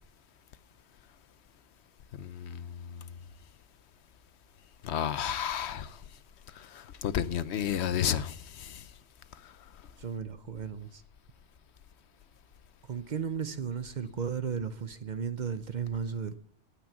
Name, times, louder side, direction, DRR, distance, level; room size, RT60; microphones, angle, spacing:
voice 1, 2.2-3.0 4.8-6.0 6.6-8.8, left 9 dB, 80° left, 1.0 m, -32 dB
voice 2, 10.0-11.0 12.8-16.4, right 7 dB, 50° right, 0.7 m, -35 dB
18.0 x 6.2 x 7.1 m
omnidirectional pair, 1.1 m